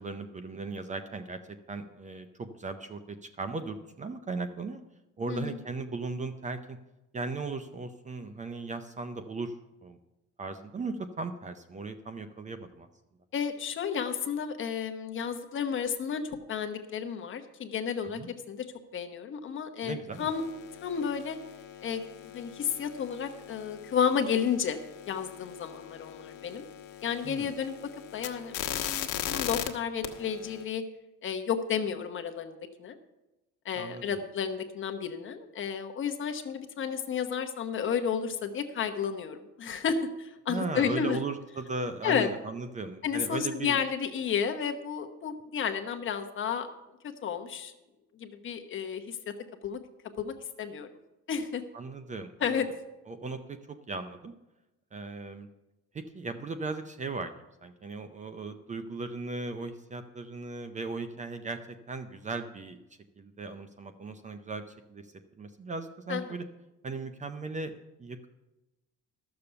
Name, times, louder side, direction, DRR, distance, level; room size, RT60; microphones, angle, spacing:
voice 1, 0.0-4.8 5.2-6.8 7.1-9.6 9.8-10.0 10.4-12.9 18.2-18.3 19.8-20.3 27.2-27.5 33.8-34.2 40.5-43.8 51.7-52.6 53.1-54.3 54.9-55.5 55.9-57.3 57.6-61.6 61.9-62.8 63.2-64.6 64.9-65.1 65.4-66.4 66.8-67.7 68.0-68.3, right 3 dB, 25° right, 9 dB, 0.5 m, -37 dB
voice 2, 13.3-16.2 16.5-18.2 18.5-18.6 18.9-20.4 20.8-21.4 21.8-24.8 25.1-26.6 27.0-27.7 28.1-30.8 31.2-33.0 33.6-41.2 42.0-42.3 43.0-46.7 47.0-47.7 48.2-49.2 49.6-49.8 50.2-50.9 51.3-51.6 52.4-52.7 66.1-66.2, left 7 dB, 40° left, 6 dB, 1.0 m, -32 dB
sound 1, 20.1-29.7 30.0-30.6, left 11 dB, 75° left, 1.3 m, -40 dB
13.0 x 6.9 x 6.8 m, 0.99 s
cardioid pair, 165°, 32 cm